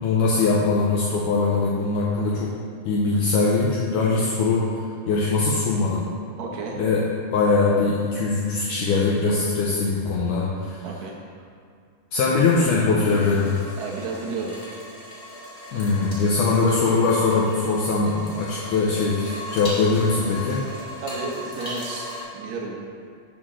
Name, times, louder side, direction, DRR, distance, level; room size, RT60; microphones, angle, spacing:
voice 1, 0.0-2.5 2.9-4.6 5.1-6.1 6.8-7.0 7.3-10.9 12.1-13.6 15.7-20.6, left 3 dB, 85° left, -5 dB, 1.8 m, -21 dB
voice 2, 6.4-6.8 10.8-11.5 13.8-14.6 21.0-22.7, right 3 dB, 75° right, -2 dB, 1.6 m, -32 dB
sound 1, 13.0-22.2, left 1 dB, 50° left, 0.6 m, -37 dB
8.2 x 3.7 x 6.1 m, 2.2 s
omnidirectional pair, 4.4 m